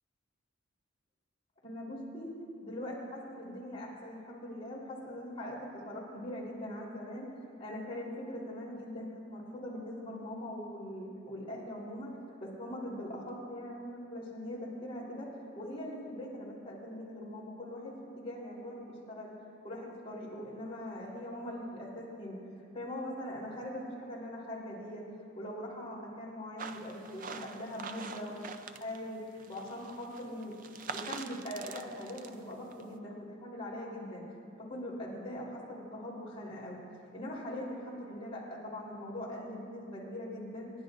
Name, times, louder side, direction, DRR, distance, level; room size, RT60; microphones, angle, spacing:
voice 1, 1.6-2.3 2.6-7.3 7.6-12.1 12.4-15.3 15.6-19.3 19.6-22.4 22.7-28.4 28.8-29.2 29.5-34.2 34.6-36.8 37.1-40.7, left 1 dB, 30° left, -6 dB, 3.6 m, -41 dB
sound 1, 26.6-29.1 29.4-32.9, right 5 dB, 40° right, 0.5 m, -45 dB
28.5 x 11.0 x 2.5 m, 2.4 s
head